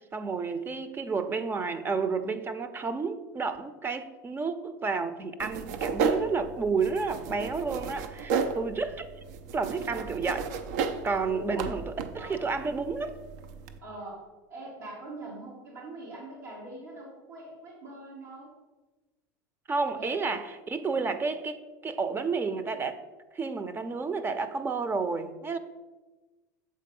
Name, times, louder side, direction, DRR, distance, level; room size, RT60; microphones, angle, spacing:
voice 1, 0.1-9.1 9.5-10.5 11.0-13.2 19.7-23.0 23.3-25.6, right 4 dB, 20° right, 11 dB, 0.6 m, -31 dB
sound 1, 5.4-13.8, right 5 dB, 70° right, 0.6 m, -33 dB
voice 2, 11.2-11.7 12.2-12.5 13.8-14.2 14.5-18.5 19.9-20.1 20.9-21.2, right 1 dB, 90° right, -6 dB, 1.9 m, -42 dB
7.6 x 3.7 x 5.4 m, 1.2 s
supercardioid pair, 100°, 10 cm